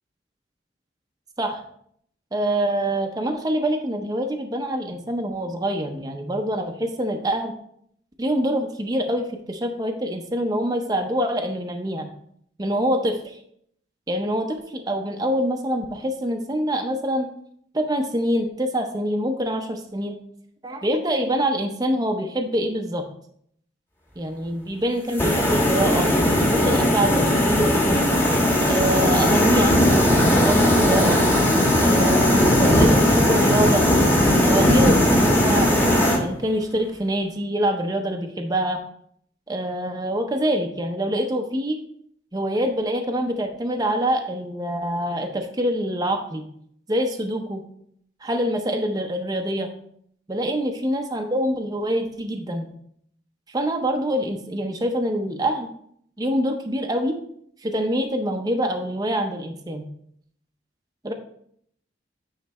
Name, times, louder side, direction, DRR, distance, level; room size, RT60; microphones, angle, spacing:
voice 1, 2.3-7.5 8.2-12.1 12.6-13.4 14.1-17.3 17.7-20.2 20.6-23.0 24.2-26.1 26.5-28.0 28.6-31.2 31.8-33.9 34.4-38.8 39.5-41.8 42.3-46.4 46.9-47.6 48.2-49.7 50.3-52.7 53.5-55.7 56.2-57.2 57.6-59.9 61.0-61.1, right 1 dB, 20° right, 4 dB, 0.6 m, -25 dB
sound 1, 25.2-36.2, left 1 dB, 15° left, 1.2 m, -18 dB
9.5 x 3.2 x 4.2 m, 0.67 s
head